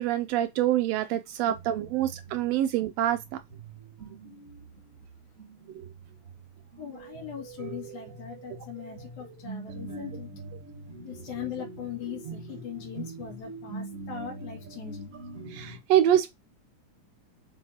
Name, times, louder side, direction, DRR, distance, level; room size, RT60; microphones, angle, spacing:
voice 1, 0.0-3.2 15.5-16.3, right 11 dB, 80° right, 1.5 m, -25 dB
sound 1, 1.5-15.8, right 3 dB, 45° right, 1.1 m, -43 dB
voice 2, 6.8-10.3 11.0-15.1, left 9 dB, 80° left, 3.5 m, -40 dB
7.3 x 4.7 x 2.8 m
omnidirectional pair, 3.4 m